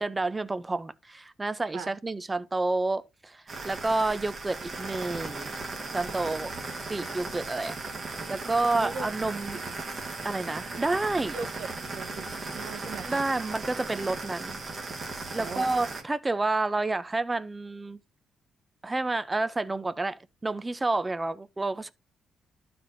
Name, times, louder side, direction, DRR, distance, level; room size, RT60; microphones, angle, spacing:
voice 1, 0.0-5.5 5.9-6.5 6.9-7.7 8.3-9.6 10.2-11.4 13.0-14.6 15.3-18.0 18.8-21.9, right 2 dB, 20° right, 0.6 m, -29 dB
sound 1, 3.5-16.0, right 3 dB, 40° right, 1.5 m, -37 dB
voice 2, 11.3-11.7 12.0-12.3 12.5-13.2 15.3-15.7, right 5 dB, 75° right, 1.0 m, -38 dB
12.0 x 4.3 x 2.7 m
cardioid pair, 90°, 0 cm